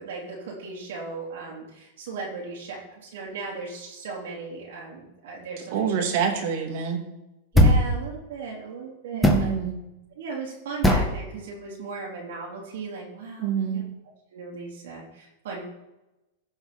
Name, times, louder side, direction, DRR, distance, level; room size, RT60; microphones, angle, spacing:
voice 1, 0.0-5.9 7.5-9.5 10.1-13.8 14.3-15.6, right 4 dB, 75° right, -4 dB, 3.6 m, -37 dB
voice 2, 5.7-7.0 9.1-9.7 13.4-13.8, right 7 dB, 60° right, 3 dB, 2.5 m, -26 dB
sound 1, 7.5-7.9 9.2-9.5 10.8-11.1, equal, 5° left, 1.7 m, -18 dB
15.5 x 5.6 x 4.3 m, 0.97 s
hypercardioid pair, 120°, 0 cm